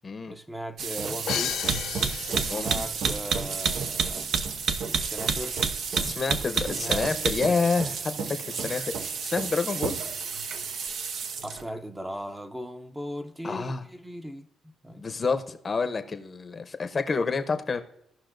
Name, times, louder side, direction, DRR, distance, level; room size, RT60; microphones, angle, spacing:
voice 1, 0.3-1.7 2.3-4.3 4.8-5.7 6.4-7.6 11.4-14.5 14.8-15.0, equal, 10° right, 0.7 m, -38 dB
sound 1, 0.8-11.6, right 5 dB, 65° right, 0.7 m, -30 dB
Crash cymbal, 1.3-3.1, left 10 dB, 70° left, 0.3 m, -33 dB
voice 2, 2.5-2.8 6.0-10.0 13.4-13.8 15.0-17.8, left 4 dB, 35° left, 0.8 m, -28 dB
16.0 x 5.5 x 2.6 m
cardioid pair, 90°, 0 cm